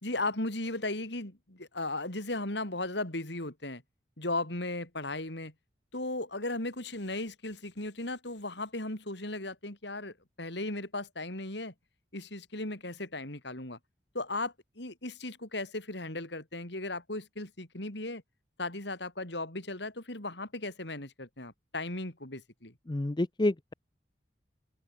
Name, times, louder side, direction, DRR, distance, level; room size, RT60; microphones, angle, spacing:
voice 1, 0.0-3.8 4.2-5.5 5.9-11.7 12.1-13.8 14.1-18.2 18.6-22.7, left 2 dB, 70° left, 4.5 m, -36 dB
voice 2, 22.9-23.7, left 1 dB, 25° left, 0.5 m, -29 dB
open air
head